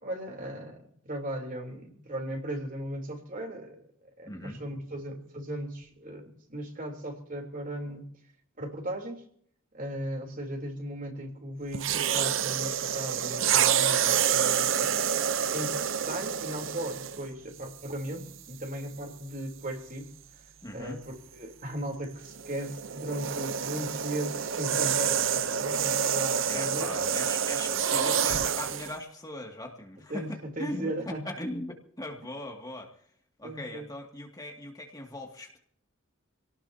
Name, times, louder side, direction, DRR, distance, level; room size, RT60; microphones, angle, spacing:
voice 1, 0.0-3.9 4.2-8.1 8.6-9.2 9.7-15.0 15.5-20.1 20.7-26.9 30.1-31.4 33.4-33.9, right 1 dB, 40° right, 2 dB, 3.5 m, -37 dB
voice 2, 4.3-4.6 20.6-21.0 26.5-33.1 33.4-35.6, left 1 dB, 20° left, 1 dB, 2.3 m, -39 dB
sound 1, 11.7-17.3 18.1-18.3 22.2-28.9, right 8 dB, 65° right, 0.8 m, -28 dB
27.0 x 18.5 x 2.8 m, 0.63 s
head